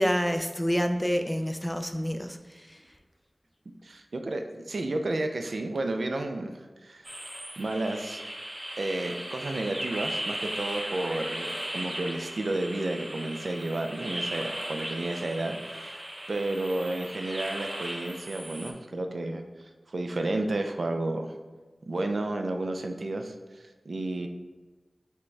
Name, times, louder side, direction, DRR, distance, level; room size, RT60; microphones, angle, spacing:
voice 1, 0.0-2.8, equal, 5° left, 6 dB, 0.4 m, -28 dB
voice 2, 3.8-6.5 6.8-7.1 7.6-8.2 8.8-16.0 16.3-21.3 21.9-23.3 23.9-24.3, right 2 dB, 75° right, 5 dB, 0.4 m, -31 dB
sound 1, 7.0-18.7, right 1 dB, 30° right, 0.6 m, -37 dB
6.1 x 2.2 x 3.2 m, 1.2 s
wide cardioid pair, 45°, 0 cm